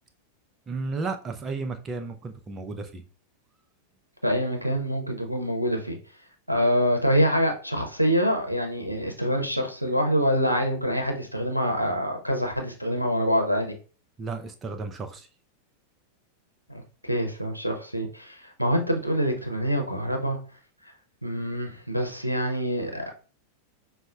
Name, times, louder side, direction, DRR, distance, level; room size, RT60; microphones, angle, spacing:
voice 1, 0.7-3.0 14.2-15.3, right 4 dB, 20° right, 7 dB, 0.5 m, -33 dB
voice 2, 4.2-6.0 6.5-13.8 16.7-20.4 21.2-23.1, equal, 90° right, 3 dB, 0.5 m, -25 dB
5.2 x 2.0 x 2.3 m, 0.37 s
figure-of-eight pair, 90°, 0 cm